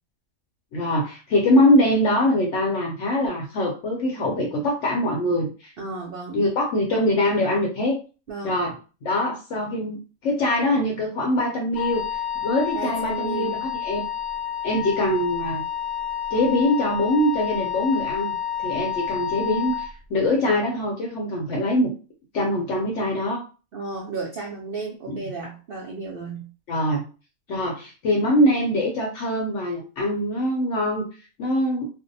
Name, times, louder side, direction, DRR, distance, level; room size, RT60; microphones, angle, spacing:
voice 1, 0.7-5.7 6.3-8.0 8.4-8.7 9.0-12.0 12.4-14.0 14.6-15.6 16.3-18.3 18.6-21.9 22.3-23.4 25.1-25.2 26.7-27.0 27.5-31.1 31.4-31.9, left 1 dB, 65° left, -1 dB, 0.8 m, -23 dB
voice 2, 5.8-6.4 8.3-8.5 12.7-13.7 23.7-26.5, right 4 dB, 70° right, -2 dB, 0.5 m, -33 dB
Wind instrument woodwind instrument, 11.7-19.9, left 10 dB, 80° left, 1.1 m, -29 dB
2.5 x 2.0 x 2.6 m, 0.34 s
omnidirectional pair, 1.5 m